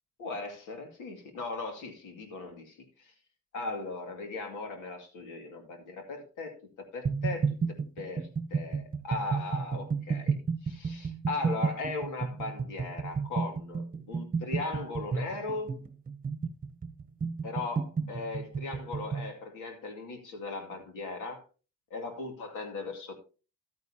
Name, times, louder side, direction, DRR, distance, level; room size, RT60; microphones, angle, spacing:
voice 1, 0.2-3.1 3.5-6.5 6.8-10.4 10.6-15.7 17.4-21.4 21.9-23.1, left 3 dB, 90° left, 2.4 m, -38 dB
sound 1, 7.0-19.3, right 5 dB, 30° right, 1.0 m, -32 dB
12.5 x 9.3 x 2.8 m
cardioid pair, 90°, 30 cm